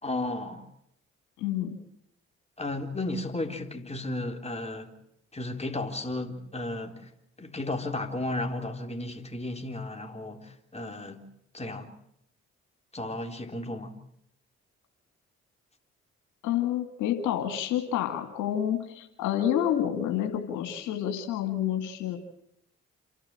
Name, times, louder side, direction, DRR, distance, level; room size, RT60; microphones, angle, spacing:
voice 1, 0.0-0.7 2.6-4.9 5.3-7.1 7.4-11.3 11.5-11.9 12.9-14.0, left 2 dB, 20° left, 3.8 m, -34 dB
voice 2, 1.4-1.8 16.4-22.2, left 10 dB, 85° left, 2.2 m, -29 dB
28.5 x 12.0 x 8.9 m
hypercardioid pair, 45°, 30 cm